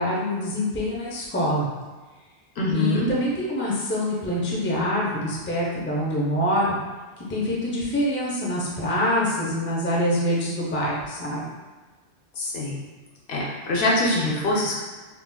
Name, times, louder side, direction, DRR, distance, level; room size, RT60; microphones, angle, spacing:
voice 1, 0.0-1.7 2.7-6.8 7.2-11.5, equal, 15° left, -5 dB, 0.4 m, -25 dB
voice 2, 2.6-3.1 12.4-12.8 13.3-14.8, left 2 dB, 70° left, -4 dB, 0.9 m, -24 dB
3.8 x 2.3 x 2.2 m, 1.3 s
omnidirectional pair, 1.1 m